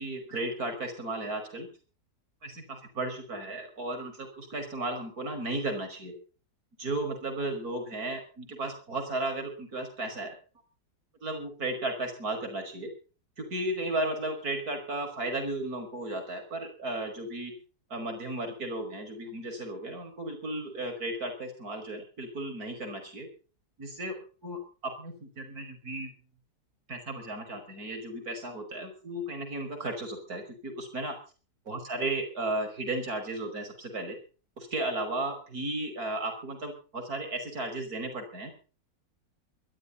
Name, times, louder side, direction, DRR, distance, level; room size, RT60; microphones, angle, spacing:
voice 1, 0.0-1.7 2.4-6.1 6.8-10.4 11.2-12.9 13.4-17.5 17.9-23.3 23.8-24.2 24.4-24.6 25.0-26.1 26.9-31.2 31.7-34.2 34.6-38.5, right 2 dB, 55° right, 5 dB, 5.8 m, -34 dB
22.5 x 13.0 x 4.0 m, 0.37 s
omnidirectional pair, 1.9 m